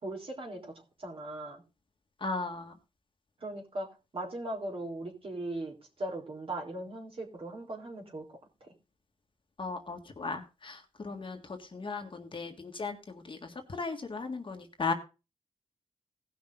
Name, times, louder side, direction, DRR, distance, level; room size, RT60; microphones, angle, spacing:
voice 1, 0.0-1.6 3.4-3.9 4.1-8.7, right 1 dB, 50° right, 1 dB, 3.7 m, -39 dB
voice 2, 2.2-2.7 9.6-14.9, left 4 dB, 45° left, 4 dB, 1.8 m, -37 dB
17.5 x 6.0 x 3.7 m, 0.30 s
wide cardioid pair, 90°, 12 cm